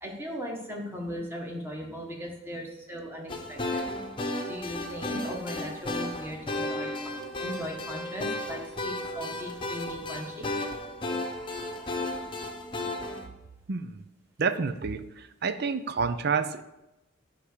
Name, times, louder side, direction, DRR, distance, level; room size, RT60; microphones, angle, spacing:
voice 1, 0.0-3.8 4.5-7.1 7.4-10.5, equal, 10° right, -1 dB, 1.6 m, -38 dB
sound 1, 3.3-13.3, left 1 dB, 25° left, 0.9 m, -34 dB
voice 2, 13.7-14.0 14.4-16.6, right 5 dB, 55° right, 12 dB, 0.5 m, -29 dB
9.9 x 3.6 x 6.7 m, 0.96 s
head